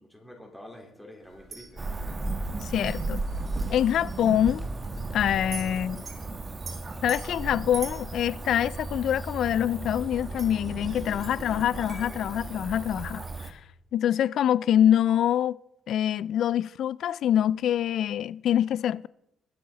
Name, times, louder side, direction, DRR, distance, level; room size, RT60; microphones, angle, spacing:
voice 1, 0.0-2.1, left 1 dB, 5° left, 3.9 m, -48 dB
sound 1, 1.2-12.0, right 4 dB, 45° right, 3.6 m, -47 dB
Cricket / Motor vehicle (road), 1.8-13.5, right 2 dB, 30° right, 1.2 m, -35 dB
voice 2, 2.6-3.2 3.7-4.7 5.1-6.0 7.0-13.6 13.9-15.6 15.9-19.1, left 10 dB, 70° left, 0.3 m, -25 dB
21.0 x 7.6 x 4.0 m
cardioid pair, 90°, 0 cm